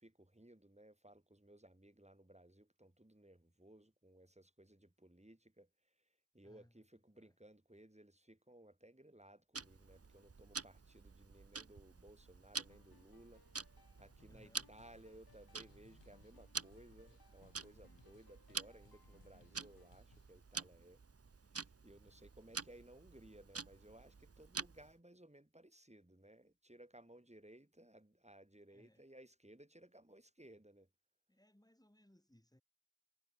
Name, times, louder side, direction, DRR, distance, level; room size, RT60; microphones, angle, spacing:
voice 1, 0.0-6.1 6.3-13.4 13.7-21.0 21.4-30.9, right 1 dB, 15° right, 6.9 m, -61 dB
voice 2, 6.4-6.9 7.1-7.3 14.3-14.7 28.7-29.1 31.3-32.6, left 1 dB, 10° left, 5.3 m, -68 dB
Tick-tock, 9.5-25.0, right 4 dB, 35° right, 1.0 m, -49 dB
sound 1, 12.6-19.9, left 3 dB, 55° left, 7.8 m, -70 dB
sound 2, 14.6-20.4, left 6 dB, 75° left, 2.2 m, -71 dB
cardioid pair, 40°, 43 cm